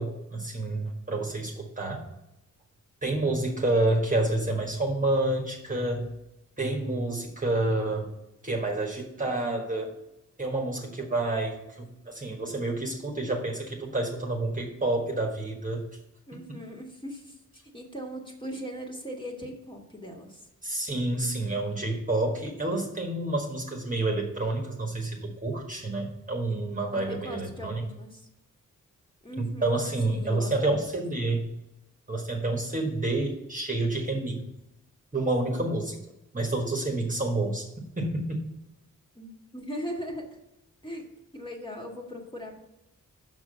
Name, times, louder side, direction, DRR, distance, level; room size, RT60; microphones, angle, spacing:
voice 1, 0.0-2.1 3.0-6.1 6.6-8.1 8.4-9.9 10.4-15.8 20.6-27.8 29.4-31.4 32.1-34.4 35.1-36.0 36.3-37.7 38.0-38.5, right 2 dB, 25° right, 0 dB, 1.5 m, -29 dB
voice 2, 16.3-17.4 17.7-20.5 26.9-28.3 29.2-29.8 30.1-30.8 39.1-40.3 40.8-41.1 41.3-42.6, equal, 15° left, 0 dB, 1.8 m, -39 dB
6.0 x 5.9 x 6.8 m, 0.90 s
wide cardioid pair, 90°, 31 cm